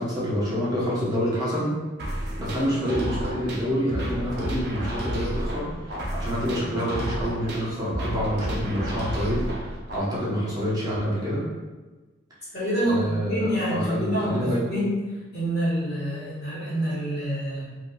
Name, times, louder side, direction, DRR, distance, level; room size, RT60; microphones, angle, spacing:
voice 1, 0.0-1.7 2.1-9.5 9.9-11.4 12.8-14.7, equal, 20° right, -8 dB, 0.8 m, -27 dB
sound 1, 2.0-10.0, right 1 dB, 60° right, 0.6 m, -31 dB
voice 2, 12.5-15.0 15.3-17.7, equal, 60° left, -9 dB, 1.4 m, -27 dB
3.5 x 2.7 x 2.2 m, 1.2 s
head